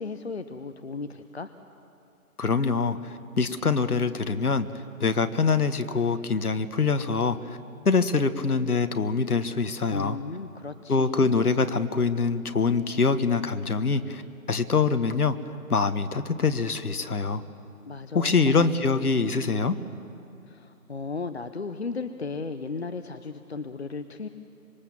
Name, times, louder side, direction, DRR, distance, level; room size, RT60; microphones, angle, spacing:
voice 1, 0.0-1.5 9.9-11.5 17.9-19.2 20.5-24.3, left 4 dB, 45° left, 9 dB, 0.8 m, -36 dB
voice 2, 2.4-4.7 5.0-7.6 7.8-10.2 10.9-14.2 14.5-15.4 15.7-17.4 18.1-19.8, left 4 dB, 75° left, 10 dB, 1.4 m, -24 dB
26.0 x 23.0 x 7.4 m, 2.5 s
figure-of-eight pair, 165°, 45 cm